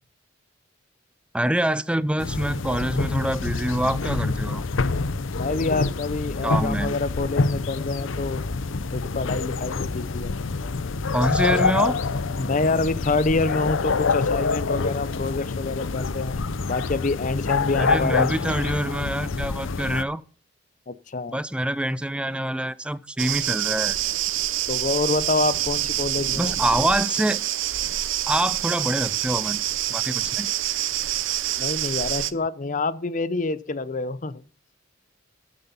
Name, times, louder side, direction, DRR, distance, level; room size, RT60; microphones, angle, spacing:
voice 1, 1.3-4.6 6.4-7.0 11.1-12.0 17.8-20.2 21.3-24.0 26.4-27.4 28.3-29.6 29.9-30.5, right 1 dB, 5° right, 0.5 m, -25 dB
sound 1, 2.2-20.0, left 4 dB, 85° left, 0.7 m, -26 dB
voice 2, 5.3-8.4 8.9-10.4 12.4-16.4 16.7-18.4 20.9-21.4 24.7-26.6 31.6-34.4, left 3 dB, 40° left, 0.7 m, -27 dB
sound 2, 23.2-32.3, right 13 dB, 75° right, 0.7 m, -26 dB
13.0 x 7.8 x 5.6 m
head